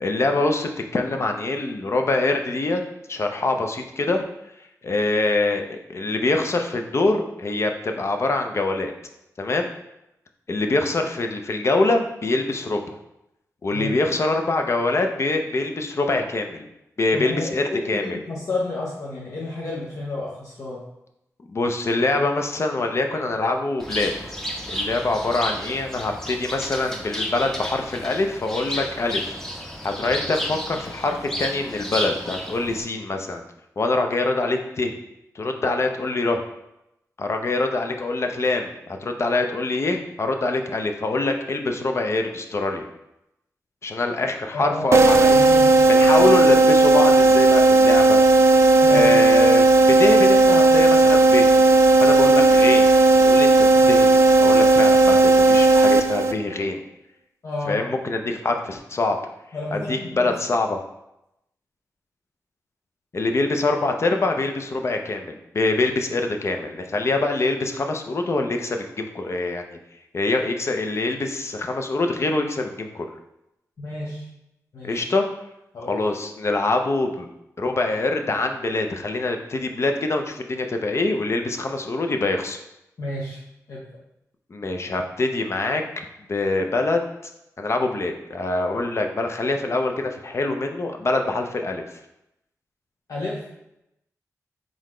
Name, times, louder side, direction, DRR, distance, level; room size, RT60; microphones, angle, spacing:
voice 1, 0.0-2.8 3.1-4.2 4.8-8.9 9.4-9.7 10.5-12.8 13.6-16.7 17.0-18.0 21.5-24.1 24.7-29.4 29.8-33.4 33.8-34.9 35.3-36.4 37.2-38.7 39.0-42.9 43.8-45.4 45.9-48.2 48.9-49.6 50.0-51.5 52.0-52.9 53.2-53.5 53.9-54.1 54.4-56.8 57.7-59.2 59.7-60.8 63.1-69.8 70.1-73.1 74.8-75.3 75.8-77.3 77.6-82.6 84.5-85.8 86.3-87.0 87.6-91.8, left 2 dB, 50° left, 4 dB, 0.5 m, -24 dB
voice 2, 17.1-20.8 44.5-46.2 48.8-49.2 53.7-53.9 57.4-57.9 58.5-58.6 59.5-60.4 73.8-74.3 74.7-75.1 75.7-76.0 83.0-83.4 83.7-84.0 93.1-93.4, left 2 dB, 65° left, -5 dB, 0.8 m, -31 dB
Bird, 23.8-32.8, equal, 5° left, 0.7 m, -32 dB
sound 1, 44.9-56.6, right 2 dB, 50° right, 0.3 m, -15 dB
3.9 x 3.7 x 3.1 m, 0.86 s
cardioid pair, 65°, 6 cm